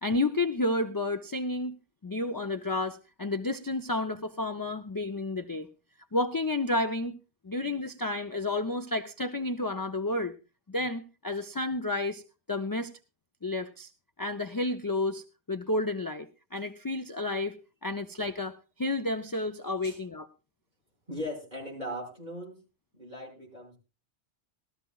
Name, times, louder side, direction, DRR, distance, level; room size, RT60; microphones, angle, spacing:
voice 1, 0.0-1.8 2.0-5.7 6.1-7.1 7.4-10.3 10.7-12.2 12.5-12.9 13.4-13.9 14.2-17.6 17.8-20.3, left 2 dB, 25° left, 7 dB, 0.5 m, -31 dB
voice 2, 21.1-22.6 22.9-23.8, equal, 40° right, -2 dB, 5.9 m, -39 dB
19.5 x 13.5 x 2.3 m, 0.31 s
omnidirectional pair, 1.2 m